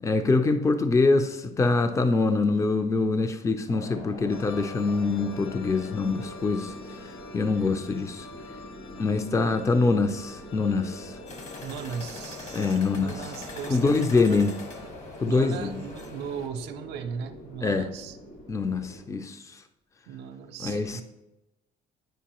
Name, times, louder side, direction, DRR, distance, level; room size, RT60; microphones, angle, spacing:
voice 1, 0.0-6.7 7.3-8.3 9.0-11.2 12.5-13.3 13.7-14.5 15.2-15.8 17.6-17.9 18.5-19.6 20.6-21.0, left 3 dB, 20° left, 0.5 m, -24 dB
sound 1, 3.7-19.0, left 1 dB, 60° left, 2.0 m, -44 dB
sound 2, 4.3-14.9, left 3 dB, 75° left, 0.7 m, -46 dB
sound 3, 11.3-16.5, left 3 dB, 40° left, 1.2 m, -45 dB
voice 2, 11.6-14.4 15.2-18.2 20.1-21.0, right 7 dB, 80° right, 0.5 m, -37 dB
9.2 x 4.6 x 2.9 m
cardioid pair, 110°, 17 cm